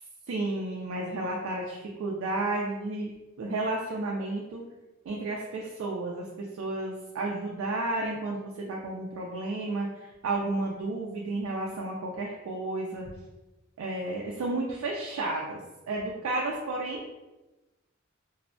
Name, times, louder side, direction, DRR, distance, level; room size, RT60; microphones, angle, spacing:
voice 1, 0.3-3.1 3.4-4.6 5.1-13.1 13.8-15.6 15.9-17.0, right 2 dB, 70° right, -2 dB, 0.3 m, -32 dB
2.6 x 2.1 x 2.5 m, 1.1 s
head